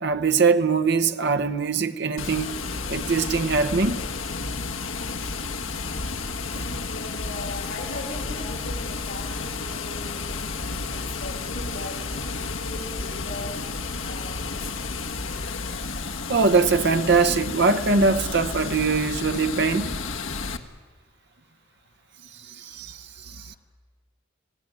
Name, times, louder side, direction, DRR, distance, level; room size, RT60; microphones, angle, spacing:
voice 1, 0.0-2.5 2.9-4.0 6.6-6.7 16.3-19.9 22.4-23.6, right 4 dB, 55° right, 0.9 m, -22 dB
Water, 2.2-20.6, left 4 dB, 70° left, 1.4 m, -31 dB
voice 2, 6.5-12.0 12.3-13.5 14.0-14.9, left 2 dB, 55° left, 7.5 m, -39 dB
26.5 x 17.0 x 9.1 m
head